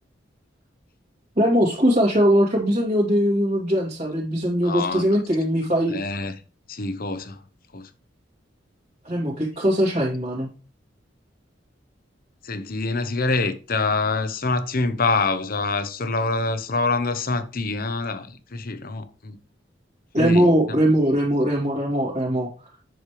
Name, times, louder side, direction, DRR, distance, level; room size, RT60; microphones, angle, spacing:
voice 1, 1.4-6.0 9.0-10.5 20.1-22.5, equal, 40° right, 2.4 m, -20 dB
voice 2, 4.6-5.0 5.9-6.4 6.7-7.4 7.7-7.9 12.4-19.4 20.2-20.5, left 3 dB, 50° left, 0.9 m, -25 dB
7.9 x 6.5 x 3.2 m
head